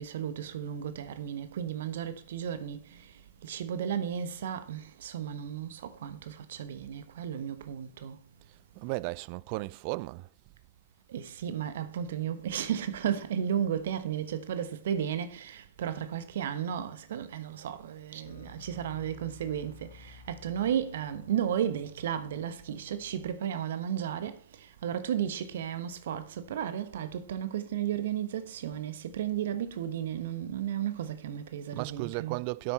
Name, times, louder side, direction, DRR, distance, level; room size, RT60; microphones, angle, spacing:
voice 1, 0.0-8.2 11.1-32.4, right 9 dB, 60° right, 1.1 m, -34 dB
voice 2, 8.8-10.3 31.7-32.7, right 23 dB, 45° right, 0.4 m, -34 dB
sound 1, 18.2-23.3, left 3 dB, 75° left, 1.8 m, -52 dB
10.0 x 7.8 x 4.3 m
figure-of-eight pair, 105°, 0 cm